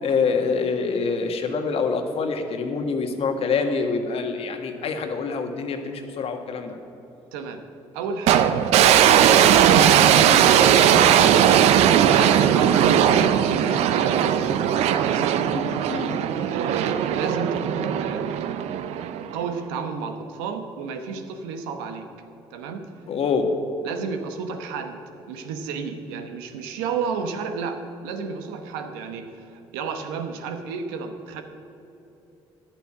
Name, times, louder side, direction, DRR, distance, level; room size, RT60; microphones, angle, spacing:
voice 1, 0.0-6.8 15.5-16.1 23.1-23.5, left 5 dB, 60° left, 5 dB, 1.5 m, -26 dB
voice 2, 7.3-7.7 7.9-8.6 9.2-14.6 15.0-15.4 16.4-18.4 19.3-22.1 22.5-22.9 23.8-31.4, right 5 dB, 90° right, 7 dB, 1.0 m, -32 dB
sound 1, 8.3-19.5, right 9 dB, 75° right, 0.6 m, -18 dB
10.5 x 9.0 x 7.4 m, 3.0 s
supercardioid pair, 65°, 11 cm